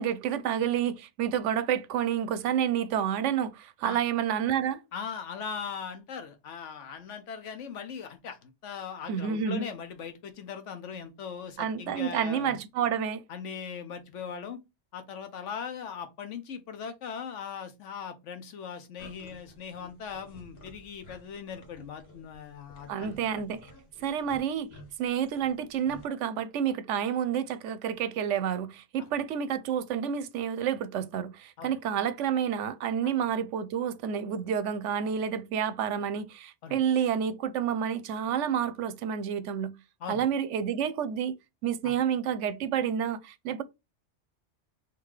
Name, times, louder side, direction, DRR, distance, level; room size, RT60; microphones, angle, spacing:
voice 1, 0.0-4.8 9.1-9.7 11.6-13.2 22.9-23.7 24.0-24.7 25.0-39.7 40.1-41.3 41.6-43.6, right 8 dB, 85° right, 0.9 m, -29 dB
voice 2, 4.9-12.6 13.3-14.6 14.9-23.4 31.6-31.7 36.6-36.8 40.0-40.2 41.8-41.9, left 7 dB, 90° left, 1.1 m, -39 dB
sound 1, 19.0-26.1, left 1 dB, 55° left, 1.4 m, -53 dB
3.7 x 2.8 x 4.7 m
omnidirectional pair, 1.2 m